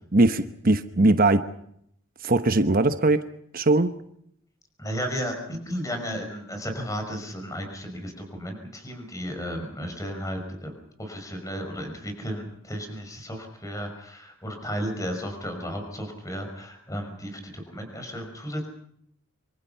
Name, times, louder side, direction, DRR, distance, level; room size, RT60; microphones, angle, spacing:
voice 1, 0.1-1.5 2.2-3.3 3.5-3.9, right 2 dB, 45° right, 10 dB, 1.0 m, -20 dB
voice 2, 4.8-10.7 11.0-18.7, equal, 15° left, 4 dB, 5.4 m, -34 dB
26.5 x 25.0 x 5.7 m, 0.71 s
head